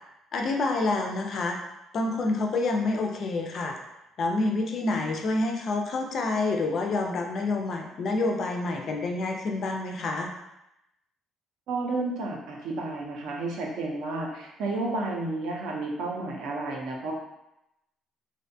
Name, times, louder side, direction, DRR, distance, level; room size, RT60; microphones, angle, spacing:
voice 1, 0.3-1.6 1.9-3.7 4.2-10.3, left 2 dB, 40° left, 2 dB, 0.3 m, -28 dB
voice 2, 11.7-17.1, right 2 dB, 70° right, -1 dB, 0.5 m, -31 dB
2.5 x 2.1 x 2.6 m, 0.88 s
cardioid pair, 155°, 0 cm